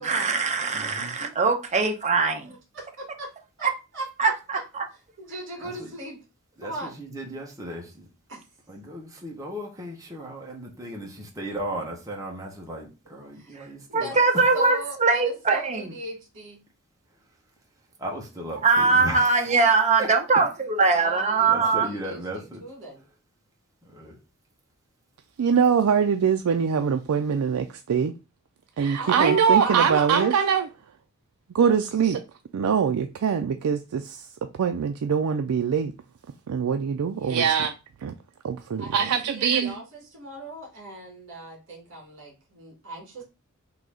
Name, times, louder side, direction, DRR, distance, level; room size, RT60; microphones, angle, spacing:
voice 1, 0.0-2.5 3.6-3.7 4.2-4.8 13.5-13.6 13.9-15.9 18.6-21.9, right 4 dB, 35° right, 0.8 m, -22 dB
voice 2, 0.7-1.2 5.6-5.9 6.6-8.1 8.7-14.4 18.0-19.7 20.0-20.1 21.4-22.6 23.8-24.2, right 1 dB, 15° right, 1.1 m, -36 dB
voice 3, 2.4-3.3 3.6-4.1 4.5-4.6 5.2-6.2 6.6-6.9 8.3-8.4 13.3-13.6 14.0-14.3 14.5-16.6 21.0-22.2 22.6-23.0 28.9-30.5 37.1-37.5 38.8-43.2, right 1 dB, 60° right, 2.3 m, -38 dB
voice 4, 25.4-28.1 28.8-30.6 31.5-32.2 32.5-34.3 34.6-35.9 36.5-37.7 38.0-38.1 38.4-39.8, right 7 dB, 80° right, 0.4 m, -22 dB
3.9 x 2.8 x 4.8 m
head